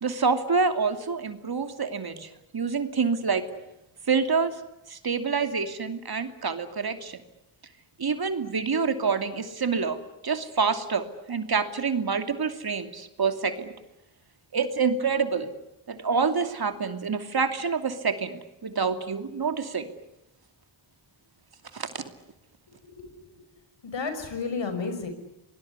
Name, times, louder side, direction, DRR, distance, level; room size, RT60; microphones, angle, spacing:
voice 1, 0.0-3.4 4.1-4.5 4.9-7.2 8.0-10.0 10.2-13.7 14.5-15.5 15.9-19.9 21.7-22.0, right 5 dB, 50° right, 8 dB, 2.8 m, -27 dB
voice 2, 22.7-23.4 23.8-25.1, left 4 dB, 65° left, 8 dB, 5.9 m, -33 dB
26.5 x 20.0 x 9.7 m, 0.91 s
cardioid pair, 60°, 48 cm